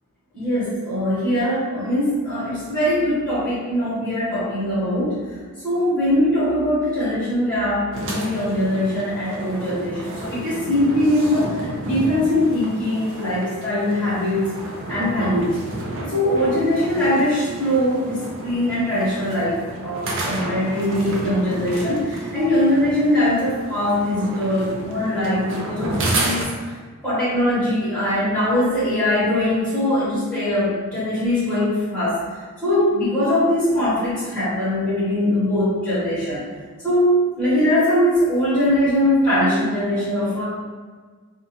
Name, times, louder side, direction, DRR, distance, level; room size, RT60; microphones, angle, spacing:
voice 1, 0.3-5.2 5.6-14.5 14.9-15.5 16.0-25.9 26.2-26.4 27.0-32.2 32.6-36.4 36.8-40.4, left 1 dB, 5° left, -13 dB, 1.1 m, -21 dB
sound 1, 7.9-26.4, right 1 dB, 55° right, 0.5 m, -31 dB
2.5 x 2.4 x 2.7 m, 1.5 s
head